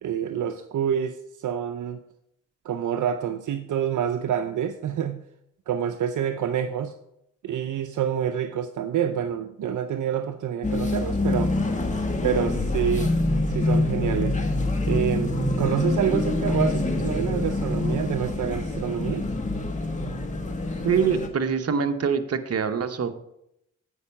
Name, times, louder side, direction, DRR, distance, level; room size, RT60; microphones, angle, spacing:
voice 1, 0.0-2.0 2.6-5.2 5.7-6.9 7.4-11.5 12.2-13.1 13.5-14.5 14.9-19.3, right 9 dB, 75° right, 9 dB, 0.5 m, -27 dB
sound 1, 10.6-21.3, left 2 dB, 25° left, 1.3 m, -26 dB
voice 2, 20.8-23.1, right 6 dB, 50° right, 8 dB, 0.9 m, -24 dB
8.2 x 5.3 x 5.6 m, 0.80 s
cardioid pair, 60°, 31 cm